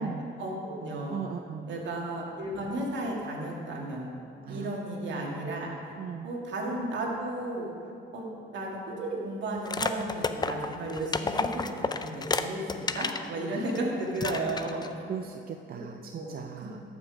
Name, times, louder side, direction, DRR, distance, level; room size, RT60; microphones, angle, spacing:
voice 1, 0.4-1.2 1.7-4.1 4.5-5.9 6.2-15.0 15.7-15.8 16.1-16.7, right 1 dB, 65° right, -2 dB, 2.2 m, -34 dB
voice 2, 1.1-1.7 4.4-4.8 6.0-6.3 13.5-13.7 15.1-16.8, right 7 dB, 50° right, 6 dB, 0.5 m, -38 dB
sound 1, 9.6-13.3 13.7-13.8 14.2-14.9, left 4 dB, 20° left, 0.5 m, -31 dB
13.5 x 6.2 x 4.9 m, 2.6 s
cardioid pair, 90°, 20 cm